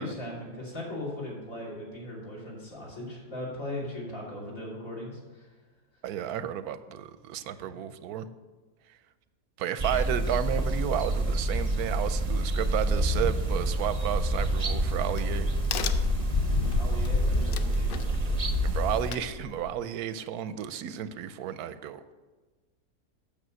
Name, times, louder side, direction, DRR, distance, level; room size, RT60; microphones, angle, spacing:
voice 1, 0.0-5.5 7.5-7.8 16.7-18.5, left 1 dB, 60° left, -5 dB, 3.4 m, -39 dB
voice 2, 6.0-8.3 9.6-15.5 18.6-22.1, right 10 dB, 90° right, 13 dB, 1.1 m, -32 dB
sound 1, 9.8-19.1, right 2 dB, 35° right, 0.6 m, -28 dB
Crack, 14.4-19.8, left 4 dB, 80° left, 0.5 m, -32 dB
8.8 x 6.8 x 6.3 m, 1.3 s
omnidirectional pair, 1.6 m